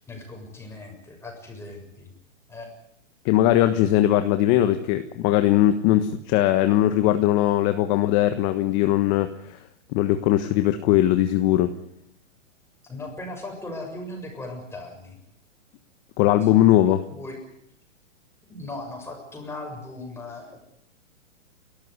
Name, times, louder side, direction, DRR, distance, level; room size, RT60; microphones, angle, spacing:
voice 1, 0.0-2.1 2.5-2.7 12.8-15.2 16.8-17.4 18.5-20.6, left 2 dB, 5° left, 1 dB, 6.9 m, -38 dB
voice 2, 3.2-9.6 9.9-11.7 16.2-17.0, left 13 dB, 30° left, 9 dB, 1.3 m, -20 dB
30.0 x 13.5 x 9.7 m, 0.76 s
hypercardioid pair, 145°, 38 cm